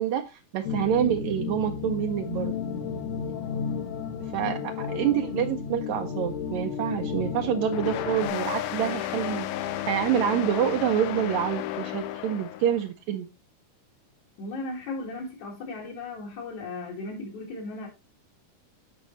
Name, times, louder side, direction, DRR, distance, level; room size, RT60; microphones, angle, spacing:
voice 1, 0.0-2.5 4.3-13.3, right 10 dB, 75° right, 1.9 m, -27 dB
sound 1, 0.6-8.3, left 6 dB, 50° left, 1.7 m, -32 dB
sound 2, 7.7-12.8, left 13 dB, 90° left, 2.2 m, -33 dB
voice 2, 14.4-17.9, left 2 dB, 70° left, 3.4 m, -36 dB
11.5 x 5.2 x 3.1 m
omnidirectional pair, 3.5 m